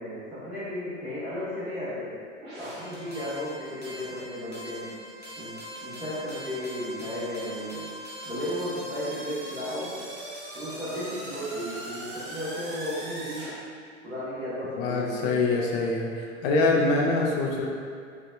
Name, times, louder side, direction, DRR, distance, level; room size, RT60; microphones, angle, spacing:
voice 1, 0.0-2.2 2.6-5.0 5.4-7.9 8.2-10.0 10.5-13.6 14.0-15.6, equal, 5° right, -14 dB, 1.2 m, -34 dB
sound 1, 2.4-13.5, equal, 25° right, 1.1 m, -40 dB
voice 2, 14.8-17.7, left 3 dB, 35° left, -1 dB, 0.6 m, -24 dB
5.1 x 2.6 x 2.4 m, 2.3 s
figure-of-eight pair, 90°, 39 cm